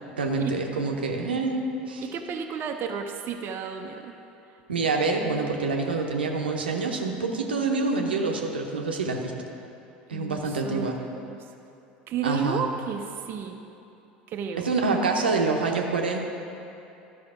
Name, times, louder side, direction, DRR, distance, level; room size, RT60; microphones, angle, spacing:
voice 1, 0.2-2.1 4.7-9.3 10.1-11.0 12.2-12.7 14.6-16.3, right 3 dB, 80° right, 2 dB, 0.8 m, -26 dB
voice 2, 2.0-4.1 10.1-11.4 12.1-13.6 14.3-15.1, right 7 dB, 40° right, 4 dB, 0.6 m, -33 dB
12.0 x 5.1 x 4.9 m, 2.7 s
figure-of-eight pair, 75°, 5 cm